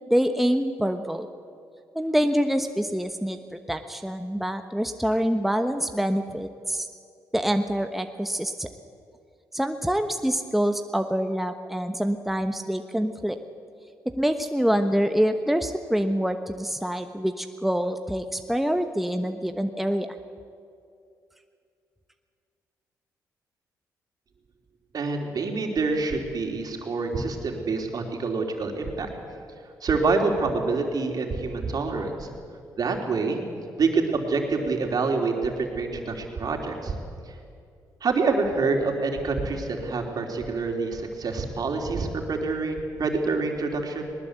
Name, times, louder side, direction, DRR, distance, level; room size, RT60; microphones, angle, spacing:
voice 1, 0.1-1.3 1.9-6.9 7.3-8.7 9.5-13.4 14.2-20.1, equal, ahead, 7 dB, 1.2 m, -26 dB
voice 2, 24.9-29.1 29.8-32.3 32.8-33.4 33.8-37.0 38.0-44.1, right 4 dB, 55° right, 3 dB, 3.6 m, -26 dB
20.0 x 19.5 x 8.2 m, 2.4 s
supercardioid pair, 55°, 8 cm